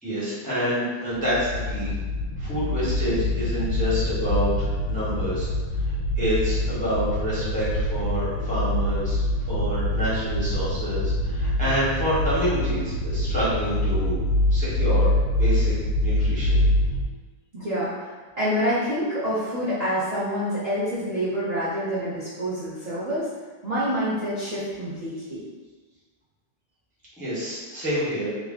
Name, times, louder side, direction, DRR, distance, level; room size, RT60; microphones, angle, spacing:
voice 1, 0.0-1.9 2.4-5.5 5.8-9.2 9.5-14.2 14.5-15.7 16.0-16.6 27.2-28.3, equal, 5° left, -10 dB, 0.6 m, -28 dB
sound 1, 1.2-17.0, left 1 dB, 75° left, 1.3 m, -25 dB
voice 2, 17.5-18.1 18.4-23.3 23.6-25.4, equal, 45° right, -11 dB, 0.5 m, -27 dB
3.7 x 2.2 x 3.6 m, 1.3 s
omnidirectional pair, 2.3 m